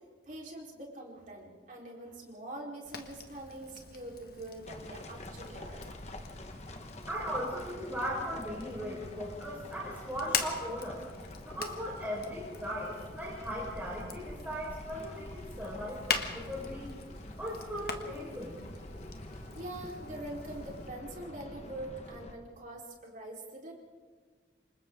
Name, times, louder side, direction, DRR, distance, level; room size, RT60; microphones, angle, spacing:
voice 1, 0.2-5.8 19.3-23.7, right 1 dB, 45° right, -2 dB, 4.4 m, -44 dB
Fire, 2.8-20.9, left 6 dB, 55° left, 1.6 m, -43 dB
sound 1, 4.7-22.4, left 1 dB, 35° left, 1.6 m, -47 dB
voice 2, 7.1-11.0 11.4-16.9 17.4-18.6, equal, 10° right, -6 dB, 5.1 m, -38 dB
28.5 x 25.5 x 3.9 m, 1.5 s
head